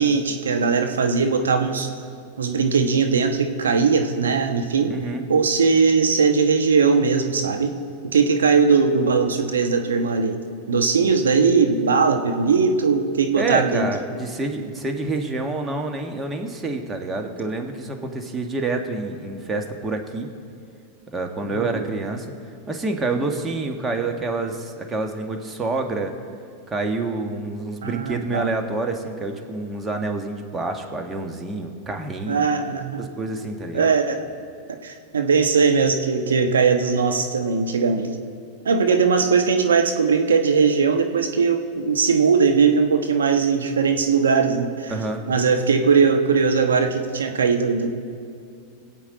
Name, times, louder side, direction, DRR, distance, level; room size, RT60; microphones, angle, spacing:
voice 1, 0.0-1.9 2.4-4.9 5.3-7.7 8.0-10.4 10.7-13.9 21.4-21.8 27.8-28.5 32.3-33.1 33.7-34.2 34.7-38.1 38.6-44.9 45.3-47.9, right 5 dB, 85° right, 5 dB, 1.2 m, -19 dB
voice 2, 4.9-5.2 13.3-20.3 21.1-22.3 22.7-26.1 26.7-32.5 33.0-33.9 44.9-45.3, right 3 dB, 20° right, 4 dB, 1.7 m, -27 dB
23.5 x 8.4 x 4.1 m, 2.4 s
hypercardioid pair, 100°, 0 cm